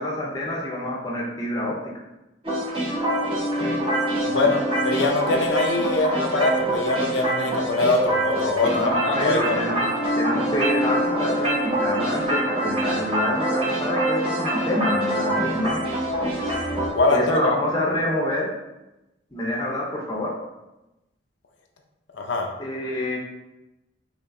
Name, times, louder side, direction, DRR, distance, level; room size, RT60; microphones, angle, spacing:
voice 1, 0.0-1.8 8.7-15.8 17.1-18.5 19.3-20.3 22.6-23.2, left 1 dB, 20° left, -3 dB, 0.6 m, -27 dB
sound 1, 2.4-16.9, right 1 dB, 30° right, 0.9 m, -25 dB
voice 2, 4.3-9.4 17.0-17.4 22.1-22.5, left 3 dB, 90° left, 3 dB, 0.6 m, -23 dB
4.8 x 2.7 x 2.6 m, 0.97 s
head